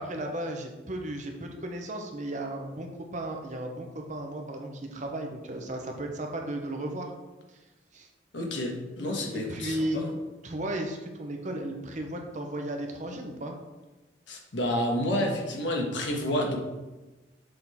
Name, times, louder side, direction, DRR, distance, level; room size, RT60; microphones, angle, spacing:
voice 1, 0.0-7.1 7.5-7.6 7.9-8.1 9.3-10.0 10.4-13.5, right 1 dB, 40° right, 3 dB, 0.8 m, -35 dB
voice 2, 8.3-10.1 14.3-16.6, left 1 dB, 80° left, 1 dB, 1.2 m, -29 dB
6.7 x 3.8 x 4.1 m, 1.1 s
head